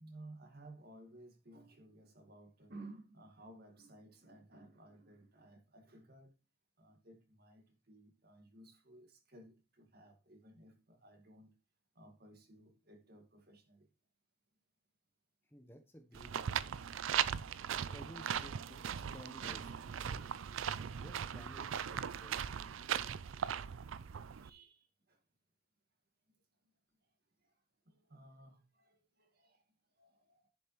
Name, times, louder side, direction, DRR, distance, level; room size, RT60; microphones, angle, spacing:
voice 1, 0.0-6.3 6.8-11.5 12.0-13.9 19.4-19.8 24.4-25.2 27.9-29.6 30.0-30.5, right 2 dB, 50° right, 1.9 m, -57 dB
voice 2, 15.4-16.9 17.7-19.6 19.9-20.2 20.9-22.6, equal, 10° left, 0.9 m, -56 dB
sound 1, 16.1-24.5, right 8 dB, 90° right, 0.4 m, -39 dB
11.0 x 6.8 x 3.1 m
head